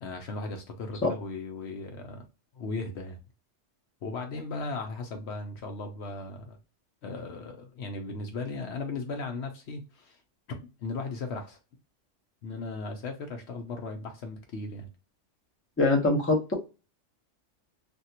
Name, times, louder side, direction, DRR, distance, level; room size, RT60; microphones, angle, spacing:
voice 1, 0.0-2.2 2.6-3.2 4.0-6.6 7.0-10.2 10.6-11.6 12.4-14.9, left 3 dB, 65° left, 0.9 m, -37 dB
voice 2, 15.8-16.5, left 2 dB, 15° left, 0.7 m, -23 dB
3.4 x 2.4 x 2.8 m
omnidirectional pair, 1.3 m